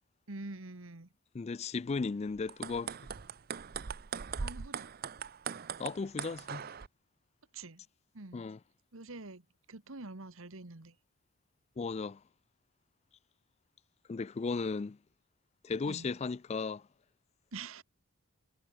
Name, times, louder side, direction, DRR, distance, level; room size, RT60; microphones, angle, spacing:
voice 1, 0.3-1.1 4.4-4.9 7.5-7.8 8.1-8.5 8.9-10.9 15.9-16.2 17.5-17.8, right 3 dB, 65° right, 1.6 m, -46 dB
voice 2, 1.3-2.9 5.8-6.7 8.3-8.6 11.8-12.2 14.1-15.0 15.6-16.8, left 4 dB, 30° left, 0.3 m, -35 dB
sound 1, 2.4-6.9, right 6 dB, 45° right, 0.5 m, -40 dB
head